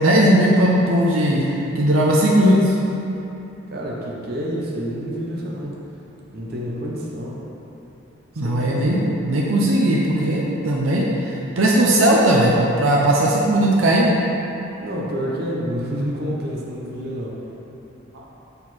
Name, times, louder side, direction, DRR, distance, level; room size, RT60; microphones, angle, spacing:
voice 1, 0.0-1.4 1.8-2.7 8.4-9.0 9.2-14.1, right 1 dB, 80° right, -3 dB, 0.7 m, -17 dB
voice 2, 3.7-5.8 6.3-7.4 8.4-9.1 14.8-17.5, equal, 50° right, -4 dB, 0.9 m, -28 dB
6.8 x 4.2 x 4.2 m, 3.0 s
head